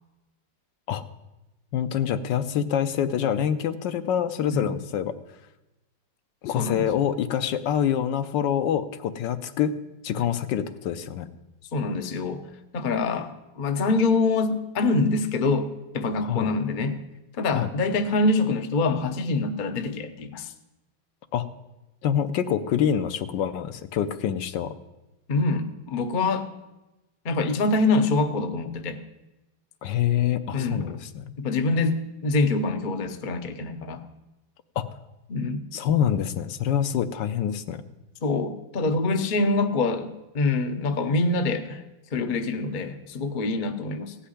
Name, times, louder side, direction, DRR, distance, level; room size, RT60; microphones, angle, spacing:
voice 1, 1.7-5.2 6.4-9.7 10.0-11.3 16.2-16.5 17.5-17.7 21.3-21.5 22.0-24.7 29.8-31.3 34.8-34.9 35.7-37.8, left 9 dB, 70° left, 10 dB, 1.3 m, -26 dB
voice 2, 6.5-6.9 11.7-12.5 12.7-17.0 17.4-20.5 25.3-26.5 27.2-29.0 30.5-30.9 31.4-34.0 35.3-35.7 38.2-41.8 42.1-44.1, left 3 dB, 50° left, 7 dB, 0.6 m, -25 dB
16.0 x 5.7 x 9.8 m, 1.0 s
omnidirectional pair, 2.1 m